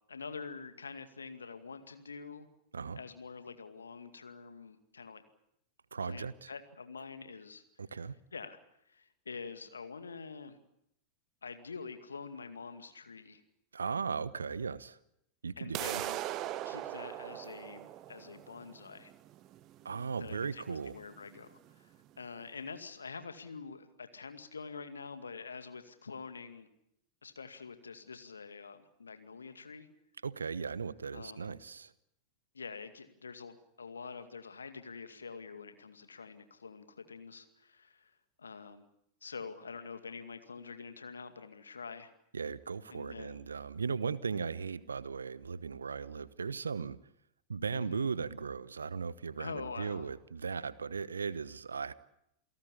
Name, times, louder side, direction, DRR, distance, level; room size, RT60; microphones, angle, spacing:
voice 1, 0.1-2.5 3.0-5.2 6.0-7.6 8.3-8.6 8.9-10.6 11.4-13.4 15.6-16.2 16.6-19.1 20.2-21.9 22.2-26.7 27.2-29.9 31.1-31.5 32.5-38.9 39.2-42.1 42.9-43.4 47.7-48.0 49.4-50.1, left 5 dB, 75° left, 2.2 m, -46 dB
voice 2, 5.9-6.5 7.8-8.2 13.7-15.0 15.4-16.0 19.8-21.0 30.2-31.9 42.3-47.0 47.5-51.9, right 5 dB, 75° right, 1.0 m, -37 dB
sound 1, 15.7-21.7, right 13 dB, 35° right, 1.1 m, -41 dB
28.5 x 17.5 x 8.4 m
figure-of-eight pair, 90°, 0 cm